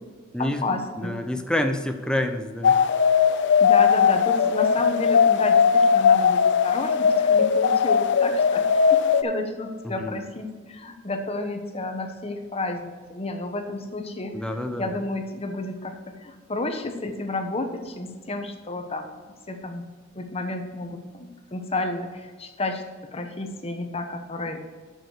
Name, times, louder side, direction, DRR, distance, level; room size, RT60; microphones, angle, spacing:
voice 1, 0.4-1.2 3.6-14.4 14.7-19.1 19.5-19.8 20.1-22.8 23.1-24.6, left 2 dB, 30° left, 5 dB, 1.0 m, -31 dB
voice 2, 1.0-2.8 9.8-10.2 14.3-15.0, left 1 dB, 5° left, 6 dB, 0.7 m, -28 dB
sound 1, 2.6-9.2, left 6 dB, 60° left, 0.4 m, -19 dB
6.7 x 6.5 x 6.5 m, 1.4 s
head